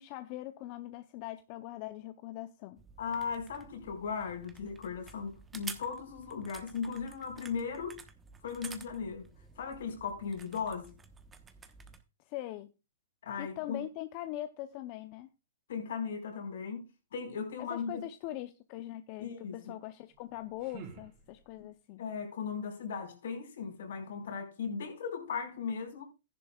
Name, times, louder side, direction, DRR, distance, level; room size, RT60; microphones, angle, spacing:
voice 1, 0.0-2.8 12.3-12.7 13.4-15.3 17.6-22.0, left 15 dB, 40° left, 0.7 m, -42 dB
sound 1, 2.8-12.0, right 5 dB, 15° right, 1.1 m, -51 dB
voice 2, 3.0-8.0 8.4-9.3 9.5-10.9 13.2-13.8 15.7-18.0 19.2-19.6 21.6-21.7 22.0-26.0, left 6 dB, 75° left, 4.8 m, -37 dB
sound 2, 20.1-21.8, right 6 dB, 40° right, 3.5 m, -51 dB
14.0 x 10.5 x 2.4 m
hypercardioid pair, 140°, 0 cm